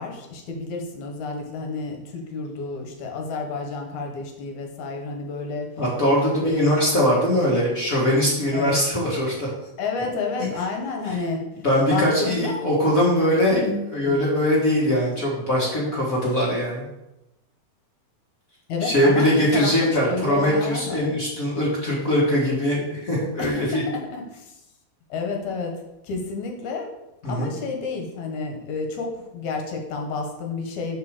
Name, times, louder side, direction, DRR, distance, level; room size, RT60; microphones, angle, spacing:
voice 1, 0.0-5.7 6.4-6.7 8.5-8.7 9.8-11.4 11.9-12.6 13.5-14.2 18.7-21.1 23.4-24.6 25.1-25.8 26.0-26.9 27.3-31.0, left 4 dB, 70° left, 2 dB, 2.3 m, -30 dB
voice 2, 5.8-9.5 10.4-10.5 11.6-13.6 13.9-16.9 18.8-23.8 27.2-27.5, equal, 35° left, -5 dB, 1.4 m, -21 dB
6.6 x 4.9 x 6.5 m, 0.94 s
omnidirectional pair, 3.7 m